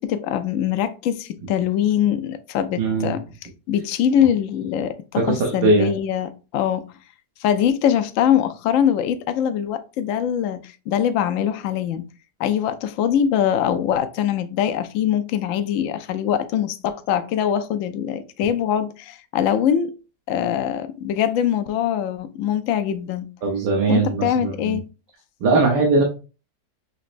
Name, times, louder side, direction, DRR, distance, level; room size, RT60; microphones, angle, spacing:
voice 1, 0.0-3.2 3.7-6.8 7.4-12.0 12.4-19.9 20.3-23.3 23.9-24.9, left 9 dB, 70° left, 0.7 m, -22 dB
voice 2, 2.8-3.2 5.2-5.9 23.4-24.8 25.4-26.0, right 3 dB, 85° right, 1.6 m, -20 dB
6.3 x 3.0 x 2.5 m
omnidirectional pair, 1.8 m